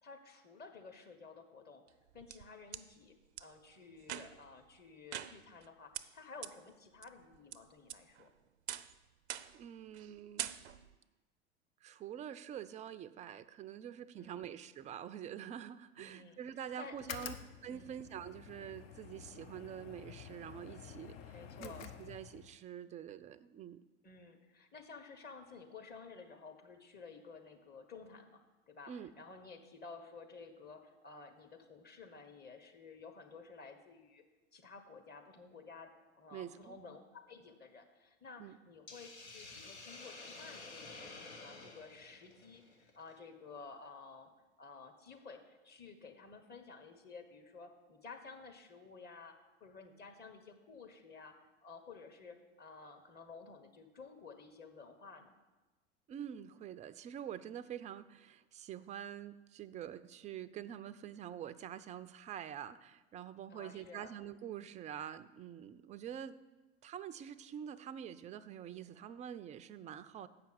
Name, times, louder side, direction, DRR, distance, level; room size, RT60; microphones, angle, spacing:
voice 1, 0.0-1.8 2.1-8.3 14.1-14.6 16.0-17.3 17.7-18.0 21.3-21.9 24.0-34.2 34.5-44.3 44.6-51.4 51.6-55.4 63.5-64.2, left 4 dB, 30° left, 5 dB, 1.3 m, -53 dB
sound 1, 1.9-2.8 3.4-3.5 4.0-4.5 5.1-5.7 5.9-6.0 6.4-6.5 7.0-7.6 7.9-8.3 8.7-8.9 9.3-9.6 9.9-10.1 10.4-10.9, right 11 dB, 75° right, 0.5 m, -43 dB
voice 2, 9.5-10.5 11.8-17.3 17.6-23.8 28.9-29.1 36.3-36.8 38.4-38.6 56.1-66.4 66.8-70.3, right 9 dB, 20° right, 14 dB, 0.4 m, -46 dB
sound 2, 16.9-22.6, left 8 dB, 60° left, 0.8 m, -50 dB
Hiss, 38.9-43.1, left 3 dB, 80° left, 1.2 m, -51 dB
7.7 x 5.7 x 7.7 m, 1.2 s
figure-of-eight pair, 80°, 33 cm